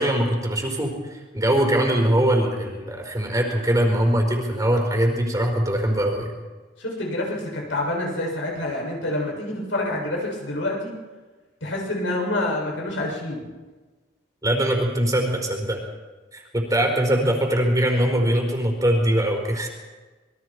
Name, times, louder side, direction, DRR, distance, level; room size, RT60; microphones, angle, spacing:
voice 1, 0.0-6.3 14.4-15.8 16.3-19.7, right 1 dB, 20° right, 1 dB, 4.4 m, -22 dB
voice 2, 6.8-10.9 11.6-13.4 16.9-17.1, left 1 dB, 80° left, -2 dB, 7.6 m, -27 dB
27.0 x 22.5 x 4.8 m, 1.3 s
head